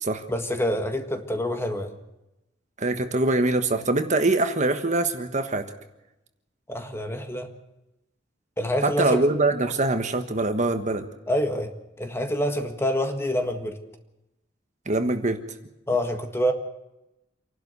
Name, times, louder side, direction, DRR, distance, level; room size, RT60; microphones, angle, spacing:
voice 1, 0.3-2.0 6.7-7.5 8.6-9.3 11.3-11.7 12.0-13.8 15.9-16.5, equal, 15° left, 6 dB, 1.7 m, -26 dB
voice 2, 2.8-5.6 8.8-11.0 14.9-15.4, right 2 dB, 40° right, 7 dB, 1.4 m, -23 dB
27.5 x 12.0 x 8.2 m, 0.93 s
head